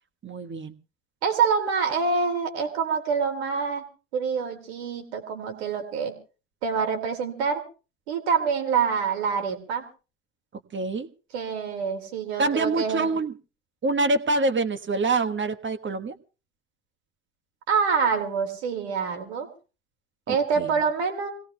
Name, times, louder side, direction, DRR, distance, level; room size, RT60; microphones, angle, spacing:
voice 1, 0.2-0.7 10.7-11.1 12.4-13.3 13.8-16.1 20.3-20.7, right 3 dB, 35° right, 9 dB, 1.4 m, -26 dB
voice 2, 1.2-3.8 4.1-6.1 6.6-7.6 8.1-9.8 11.3-13.1 17.7-19.5 20.3-21.3, right 6 dB, 85° right, 4 dB, 2.6 m, -26 dB
26.5 x 17.5 x 2.3 m, 0.34 s
hypercardioid pair, 65°, 32 cm